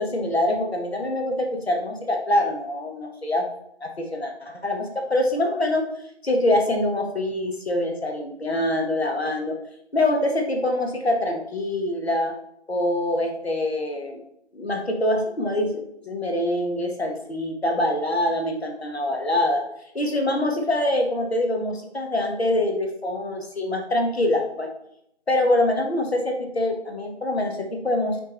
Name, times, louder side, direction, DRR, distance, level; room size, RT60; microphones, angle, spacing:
voice 1, 0.0-3.5 3.8-5.8 6.2-9.6 9.9-12.3 12.7-14.2 14.5-19.6 19.9-24.7 25.3-28.2, left 1 dB, 65° left, 2 dB, 1.6 m, -24 dB
7.7 x 4.6 x 3.2 m, 0.75 s
figure-of-eight pair, 170°, 34 cm